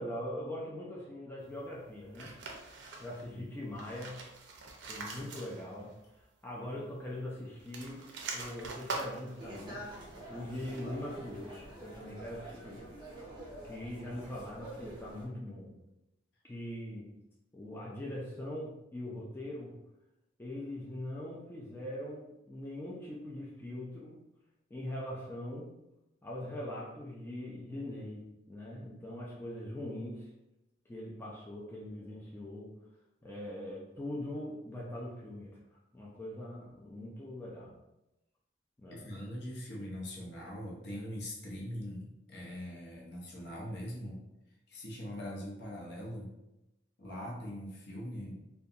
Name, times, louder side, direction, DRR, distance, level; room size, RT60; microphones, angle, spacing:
voice 1, 0.0-2.3 3.0-4.2 4.9-9.8 10.3-12.9 13.6-15.8 16.4-17.1 17.5-19.7 20.4-24.2 24.7-25.7 26.2-30.3 30.9-32.7 33.2-37.8 38.8-39.2, left 1 dB, 10° left, -5 dB, 0.3 m, -42 dB
sound 1, 2.1-3.3 3.7-5.9 6.2-6.3 7.5-11.0, right 3 dB, 65° right, 0.5 m, -44 dB
sound 2, 9.4-15.3, right 1 dB, 25° right, 0.6 m, -47 dB
voice 2, 38.9-44.2 44.7-46.3 47.0-48.4, equal, 60° left, -3 dB, 0.7 m, -42 dB
2.5 x 2.2 x 2.7 m, 0.93 s
head